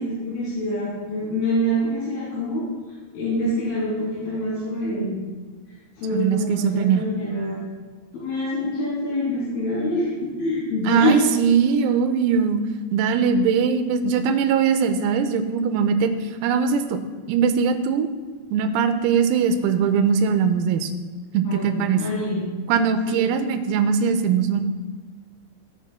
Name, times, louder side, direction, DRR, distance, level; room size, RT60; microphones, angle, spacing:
voice 1, 0.0-2.6 3.2-5.2 6.0-7.6 8.1-11.2 21.5-22.5 23.1-23.3, left 1 dB, 70° left, -9 dB, 5.1 m, -26 dB
voice 2, 6.1-7.0 10.9-12.6 12.9-16.1 16.4-17.0 17.3-18.1 18.5-20.9 21.3-22.0 22.7-24.6, right 6 dB, 90° right, 8 dB, 3.5 m, -21 dB
17.5 x 8.4 x 2.2 m, 1.4 s
omnidirectional pair, 6.0 m